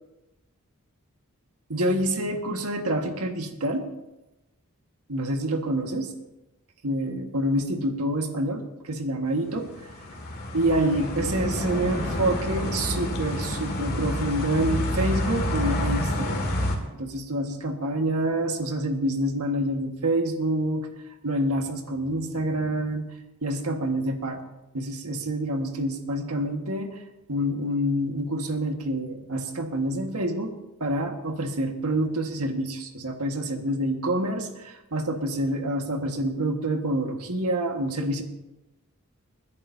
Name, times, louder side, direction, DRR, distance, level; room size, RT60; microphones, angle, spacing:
voice 1, 1.7-3.9 5.1-6.1 6.8-9.7 10.5-16.5 16.9-20.9 21.2-23.1 23.4-24.4 24.7-27.0 27.3-30.5 30.8-38.2, right 1 dB, 90° right, 4 dB, 1.6 m, -27 dB
sound 1, 9.5-16.8, left 1 dB, 45° left, 2.1 m, -28 dB
29.0 x 10.5 x 2.7 m, 0.98 s
head